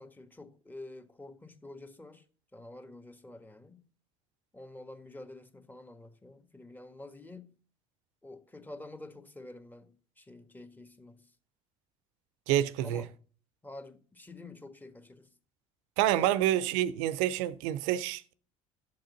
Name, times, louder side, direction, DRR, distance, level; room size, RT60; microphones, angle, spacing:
voice 1, 0.0-2.3 2.5-3.8 4.5-7.5 8.2-11.3 12.8-13.1 13.6-15.3 16.1-16.4, left 2 dB, 10° left, 1.6 m, -48 dB
voice 2, 12.5-13.0 16.0-18.3, right 12 dB, 70° right, 0.8 m, -28 dB
12.0 x 7.7 x 4.0 m
hypercardioid pair, 65°, 17 cm